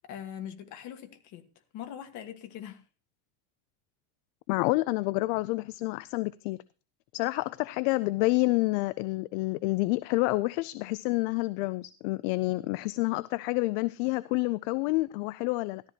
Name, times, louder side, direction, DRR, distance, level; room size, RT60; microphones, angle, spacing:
voice 1, 0.0-1.5 1.7-2.8, left 10 dB, 40° left, 7 dB, 1.5 m, -42 dB
voice 2, 4.5-6.6 7.1-15.8, left 21 dB, 55° left, 17 dB, 0.5 m, -28 dB
13.5 x 13.5 x 2.9 m, 0.33 s
cardioid pair, 180°, 45 cm